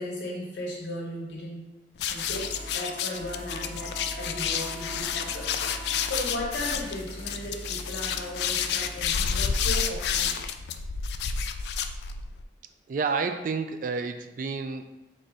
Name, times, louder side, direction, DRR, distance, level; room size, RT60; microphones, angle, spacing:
voice 1, 0.0-1.6 2.1-10.4, left 1 dB, 85° left, -3 dB, 1.3 m, -36 dB
sound 1, 2.0-12.4, left 7 dB, 65° left, 0.3 m, -30 dB
sound 2, 2.2-2.8 3.1-9.6, left 1 dB, 30° left, 0.8 m, -41 dB
Wind instrument woodwind instrument, 2.4-6.9, right 2 dB, 15° right, 0.7 m, -46 dB
voice 2, 12.9-14.9, right 4 dB, 45° right, 8 dB, 0.3 m, -30 dB
4.1 x 2.6 x 4.8 m, 1.0 s
head